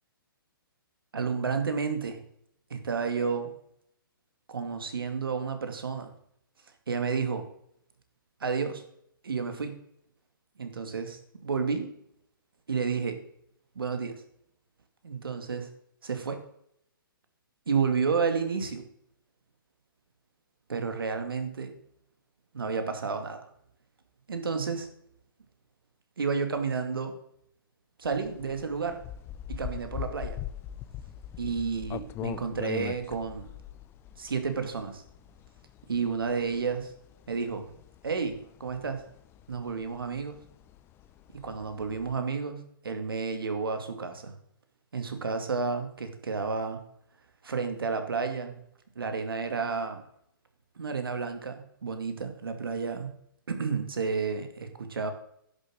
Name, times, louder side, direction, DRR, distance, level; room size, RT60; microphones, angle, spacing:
voice 1, 1.1-2.2 2.7-3.5 4.5-6.1 6.9-7.5 8.4-8.8 9.2-9.8 10.6-11.9 12.7-13.2 13.8-14.2 15.0-15.7 16.0-16.4 17.7-18.9 20.7-21.8 22.5-23.4 24.3-24.9 26.2-27.1 28.0-29.0 29.5-30.4 31.4-33.5 34.2-35.0 35.9-36.9 37.3-37.7 38.0-39.0 39.5-40.4 41.3-44.3 44.9-46.8 47.4-48.6 49.0-50.0 50.8-53.1 53.5-55.1, right 5 dB, 75° right, 7 dB, 2.4 m, -31 dB
sound 1, 28.1-42.2, left 11 dB, 20° left, 0.6 m, -42 dB
11.0 x 7.6 x 7.7 m, 0.70 s
hypercardioid pair, 135°, 12 cm